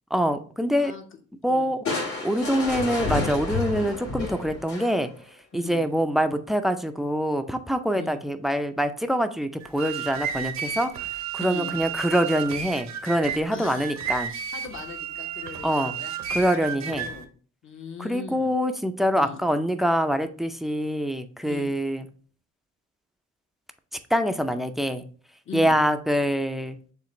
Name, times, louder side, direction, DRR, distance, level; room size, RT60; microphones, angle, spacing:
voice 1, 0.1-0.9 1.4-1.8 2.2-5.1 5.5-10.9 11.3-14.3 15.6-15.9 16.3-17.1 18.0-22.0 24.1-25.0 25.5-26.8, equal, ahead, 10 dB, 0.4 m, -25 dB
Crushing, 1.8-5.2, left 3 dB, 80° left, 2.3 m, -30 dB
voice 2, 5.5-5.9 8.0-8.2 11.4-11.7 13.5-14.0 14.3-16.1 16.6-17.3 17.6-18.5 19.1-19.4 21.5-21.7 25.5-25.7, left 6 dB, 40° left, 6 dB, 0.9 m, -39 dB
sound 1, 9.6-17.2, right 8 dB, 65° right, 0.7 m, -33 dB
6.9 x 2.5 x 3.0 m, 0.43 s
cardioid pair, 90°, 30 cm